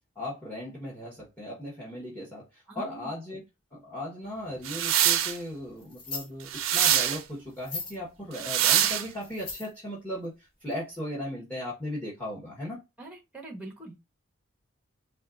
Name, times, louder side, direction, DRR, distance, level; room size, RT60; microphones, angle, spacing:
voice 1, 0.1-2.5 2.7-3.4 3.7-12.8, left 1 dB, 10° left, 1.3 m, -37 dB
voice 2, 2.7-3.1 13.0-14.1, right 2 dB, 5° right, 0.9 m, -43 dB
sound 1, 4.6-5.4 6.5-7.2 8.3-9.1, right 10 dB, 80° right, 0.5 m, -24 dB
sound 2, 5.8-6.3 6.7-6.8 7.5-8.0 8.9-9.8 10.7-10.8 11.0-11.1, left 3 dB, 45° left, 1.4 m, -38 dB
4.4 x 2.4 x 2.4 m
head